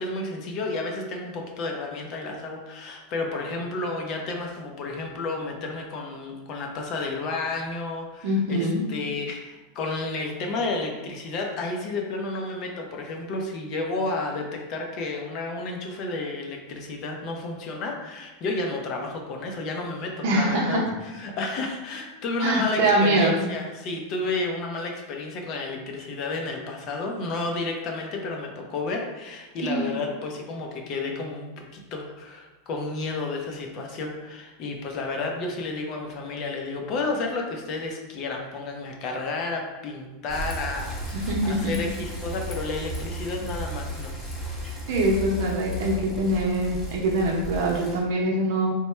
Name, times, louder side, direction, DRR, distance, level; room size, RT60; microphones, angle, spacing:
voice 1, 0.0-44.1, left 3 dB, 45° left, 1 dB, 0.6 m, -31 dB
voice 2, 8.2-8.8 20.2-20.8 22.4-23.3 29.6-29.9 41.1-41.7 44.9-48.7, right 1 dB, 65° right, -1 dB, 0.7 m, -23 dB
Bicycle, 40.3-48.0, equal, 20° left, 0.8 m, -34 dB
3.0 x 2.2 x 3.2 m, 1.2 s
supercardioid pair, 125°, 0 cm